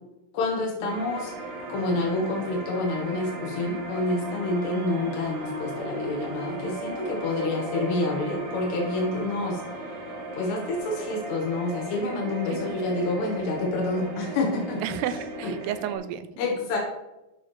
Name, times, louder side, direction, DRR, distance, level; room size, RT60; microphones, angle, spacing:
voice 1, 0.3-1.3 1.7-9.6 10.3-14.8 15.4-15.5 16.4-16.8, left 2 dB, 90° left, -1 dB, 3.3 m, -28 dB
sound 1, 0.9-15.9, right 2 dB, 60° right, 2.1 m, -36 dB
voice 2, 12.5-13.1 14.8-16.3, right 10 dB, 85° right, 12 dB, 2.6 m, -33 dB
11.5 x 6.5 x 3.1 m, 0.97 s
omnidirectional pair, 4.7 m